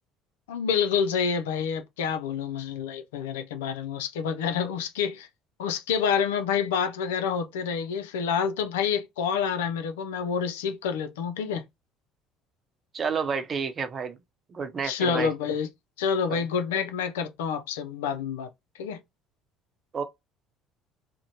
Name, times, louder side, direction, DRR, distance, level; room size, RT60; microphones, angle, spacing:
voice 1, 0.5-5.3 5.6-11.6 14.8-15.7 16.0-18.5 18.8-19.0, left 7 dB, 85° left, 0.4 m, -28 dB
voice 2, 12.9-14.2 14.5-15.3 16.3-16.4 19.9-20.0, right 5 dB, 40° right, 0.7 m, -30 dB
2.6 x 2.1 x 2.9 m
hypercardioid pair, 65°, 0 cm